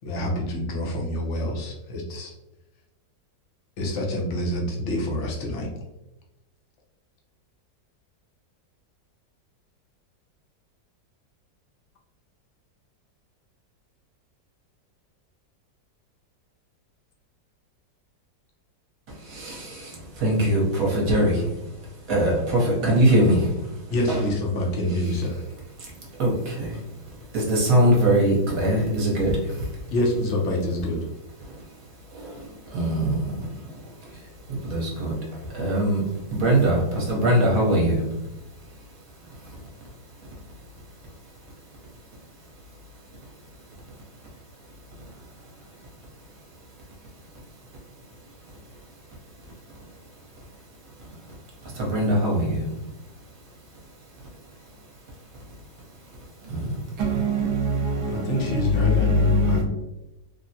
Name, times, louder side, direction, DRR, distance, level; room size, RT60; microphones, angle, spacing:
voice 1, 0.0-2.3 3.8-5.7 23.9-25.4 29.9-31.0 58.1-59.6, left 1 dB, 60° left, 0.8 m, -26 dB
voice 2, 19.1-24.2 25.8-29.9 31.4-57.2 58.0-58.2, right 1 dB, 60° right, 1.2 m, -26 dB
voice 3, 57.0-59.6, left 1 dB, 75° right, 1.2 m, -23 dB
3.5 x 2.1 x 2.7 m
omnidirectional pair, 1.9 m